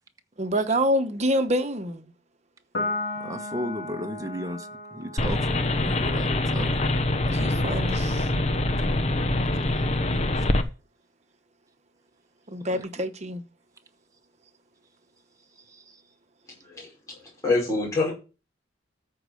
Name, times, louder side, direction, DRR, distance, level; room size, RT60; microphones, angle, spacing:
voice 1, 0.4-2.1 7.3-8.3 12.5-13.4, equal, 35° right, 1.2 m, -26 dB
Piano, 2.7-9.4, left 2 dB, 60° left, 2.4 m, -37 dB
voice 2, 3.2-7.0 12.7-12.9 15.7-15.9, equal, 20° right, 1.1 m, -35 dB
sound 1, 5.2-10.6, left 1 dB, 35° left, 1.0 m, -24 dB
voice 3, 17.4-18.1, left 3 dB, 15° left, 5.3 m, -24 dB
13.5 x 4.8 x 6.5 m
head